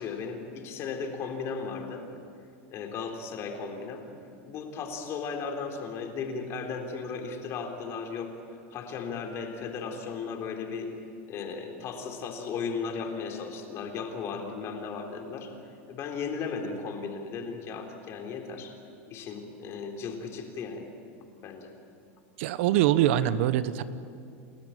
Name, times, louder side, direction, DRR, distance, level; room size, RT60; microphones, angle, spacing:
voice 1, 0.0-2.0 2.7-4.0 4.5-8.3 8.7-10.9 11.3-15.5 15.9-18.7 19.1-20.9 21.4-21.7, left 5 dB, 40° left, 3 dB, 3.7 m, -36 dB
voice 2, 22.4-23.8, right 12 dB, 65° right, 14 dB, 1.0 m, -23 dB
29.5 x 13.5 x 9.1 m, 2.4 s
supercardioid pair, 135°, 7 cm